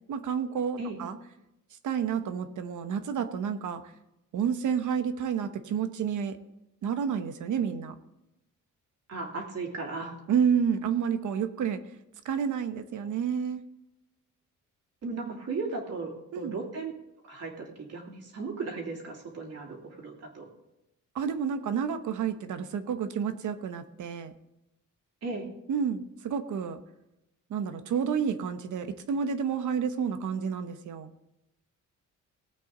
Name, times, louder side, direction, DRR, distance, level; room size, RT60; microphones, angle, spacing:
voice 1, 0.1-1.2 1.8-3.9 4.3-6.4 6.8-7.9 10.3-11.8 12.2-13.6 16.3-16.5 21.1-24.3 25.7-26.8 27.5-31.1, right 7 dB, 65° right, 9 dB, 1.1 m, -30 dB
voice 2, 9.1-10.2 15.0-16.9 17.2-20.5 25.2-25.5, right 3 dB, 50° right, -1 dB, 3.0 m, -36 dB
18.5 x 8.4 x 3.9 m, 0.89 s
cardioid pair, 160°, 32 cm